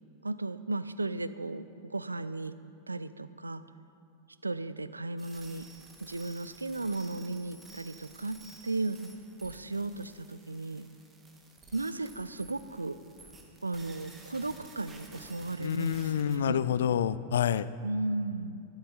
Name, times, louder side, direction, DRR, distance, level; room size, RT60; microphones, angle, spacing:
voice 1, 0.2-2.5 2.9-3.6 4.4-5.7 6.0-9.1 9.4-10.9 11.7-13.0 13.6-16.6 17.8-18.6, right 2 dB, 80° right, 15 dB, 0.4 m, -35 dB
sound 1, 5.2-16.4, right 2 dB, 15° right, 1.7 m, -53 dB
voice 2, 15.6-17.7, left 9 dB, 60° left, 15 dB, 0.4 m, -28 dB
14.0 x 12.0 x 4.0 m, 2.4 s
figure-of-eight pair, 90°, 0 cm